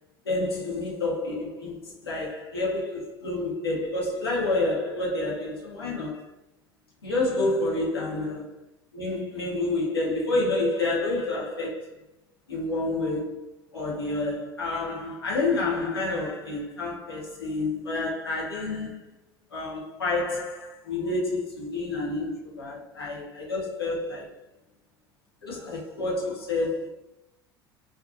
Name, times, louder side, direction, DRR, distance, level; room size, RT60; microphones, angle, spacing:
voice 1, 0.2-6.3 7.0-8.4 8.9-12.0 12.5-19.1 19.5-24.3 25.4-26.9, left 2 dB, 85° left, 0.8 m, -29 dB
2.4 x 2.2 x 2.5 m
hypercardioid pair, 70°, 13 cm